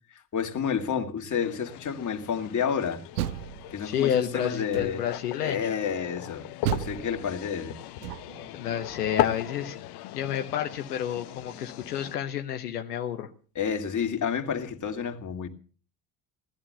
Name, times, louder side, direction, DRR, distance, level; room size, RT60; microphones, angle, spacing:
voice 1, 0.3-3.0 3.7-5.0 5.4-7.8 13.5-15.5, left 7 dB, 40° left, 2.8 m, -30 dB
sound 1, 1.4-12.2, left 14 dB, 60° left, 1.2 m, -37 dB
Door, 2.9-4.1 4.7-5.3 6.6-8.5, right 12 dB, 80° right, 0.7 m, -34 dB
voice 2, 3.8-5.8 8.5-9.8 10.1-13.3, left 9 dB, 85° left, 1.2 m, -30 dB
18.5 x 11.5 x 6.8 m
hypercardioid pair, 60°, 46 cm